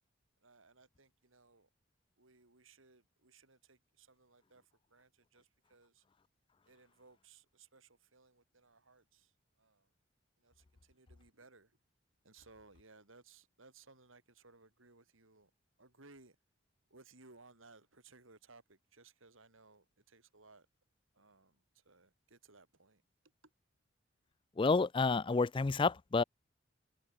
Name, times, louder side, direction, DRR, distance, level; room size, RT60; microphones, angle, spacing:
voice 1, 0.4-1.7 2.2-4.6 4.9-6.0 6.7-9.3 9.6-9.9 10.4-11.8 12.2-15.5 15.8-16.4 16.9-20.7 21.1-23.0, right 3 dB, 85° right, 3.9 m, -62 dB
voice 2, 24.6-26.2, left 4 dB, 25° left, 0.4 m, -29 dB
head